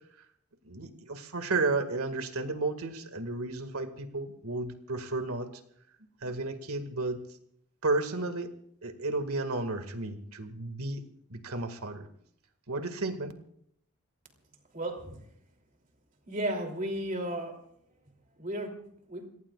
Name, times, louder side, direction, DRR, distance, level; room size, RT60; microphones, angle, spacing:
voice 1, 0.6-5.5 6.2-7.2 7.8-8.5 8.8-11.0 11.3-12.1 12.7-13.3, right 3 dB, 80° right, 8 dB, 2.0 m, -32 dB
voice 2, 14.7-15.2 16.3-17.6 18.1-19.3, right 1 dB, 35° right, 4 dB, 2.9 m, -35 dB
29.5 x 18.0 x 2.4 m, 0.68 s
head